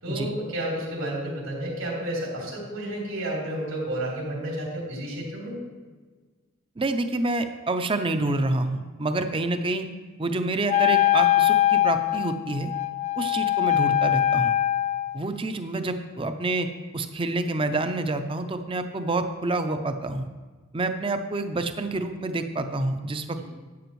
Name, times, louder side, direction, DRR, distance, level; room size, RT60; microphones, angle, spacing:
voice 1, 0.0-5.6 23.2-23.4, right 1 dB, 85° right, -4 dB, 3.4 m, -31 dB
voice 2, 6.8-9.9 10.2-12.7 13.2-14.5 15.1-16.7 16.9-20.3 20.7-23.4, right 2 dB, 25° right, 8 dB, 0.5 m, -28 dB
Wind instrument woodwind instrument, 10.7-15.2, left 13 dB, 35° left, 0.4 m, -22 dB
12.0 x 8.5 x 3.1 m, 1.4 s
head